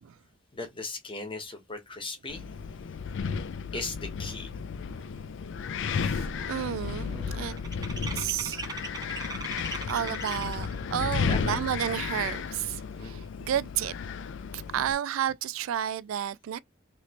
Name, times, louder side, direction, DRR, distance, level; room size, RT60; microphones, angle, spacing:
voice 1, 0.5-2.4 3.7-4.5 11.3-11.6 13.0-13.2, left 3 dB, 25° left, 1.0 m, -37 dB
Wind, 2.3-14.9, left 6 dB, 65° left, 0.4 m, -33 dB
sound 1, 5.6-5.9 6.1-10.8, right 4 dB, 20° right, 0.4 m, -40 dB
voice 2, 5.9-7.6 8.1-8.7 9.1-9.3 9.9-13.9 14.5-16.6, right 10 dB, 90° right, 0.3 m, -32 dB
3.0 x 2.8 x 2.8 m
head